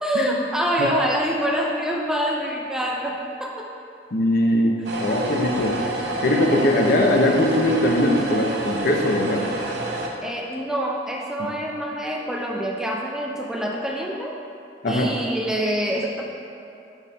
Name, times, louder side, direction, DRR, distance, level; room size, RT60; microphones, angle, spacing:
voice 1, 0.0-3.7 10.2-14.4 14.9-16.2, equal, 5° right, -1 dB, 0.4 m, -26 dB
voice 2, 4.1-5.8 6.2-9.5 14.8-15.1, left 1 dB, 55° left, 1 dB, 0.6 m, -20 dB
sound 1, 4.8-10.1, right 1 dB, 70° right, 0.7 m, -28 dB
7.2 x 4.2 x 4.0 m, 2.6 s
head